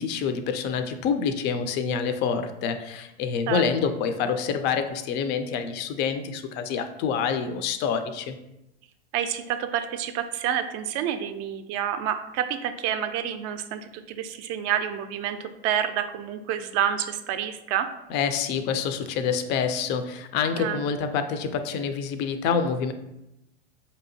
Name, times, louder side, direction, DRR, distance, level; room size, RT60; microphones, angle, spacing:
voice 1, 0.0-8.4 18.1-22.9, left 6 dB, 35° left, 9 dB, 0.4 m, -27 dB
voice 2, 9.1-17.9 20.6-20.8, right 9 dB, 45° right, 8 dB, 0.4 m, -28 dB
4.9 x 2.8 x 2.6 m, 0.87 s
hypercardioid pair, 105°, 34 cm